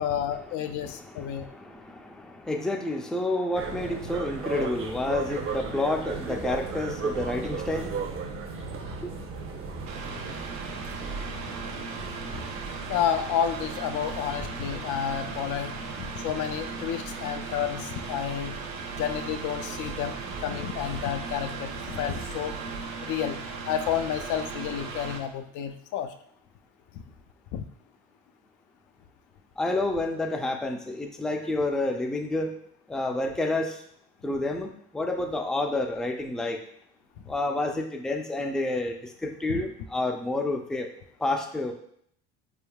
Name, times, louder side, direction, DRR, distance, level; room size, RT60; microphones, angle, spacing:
voice 1, 0.0-1.5 12.9-15.7 16.0-18.5 19.0-22.5 23.0-23.4 23.7-26.1 27.5-27.6 39.5-39.6, left 9 dB, 65° left, 7 dB, 0.5 m, -30 dB
voice 2, 0.8-8.0 9.0-9.1 29.6-32.5 32.9-33.8 34.2-36.6 37.3-40.9 41.2-41.7, left 2 dB, ahead, 3 dB, 0.4 m, -29 dB
sound 1, 3.5-22.9, right 4 dB, 40° right, 0.7 m, -38 dB
Mechanical fan, 9.9-25.2, right 4 dB, 75° right, 0.8 m, -37 dB
4.2 x 3.5 x 2.3 m, 0.66 s
supercardioid pair, 80°, 33 cm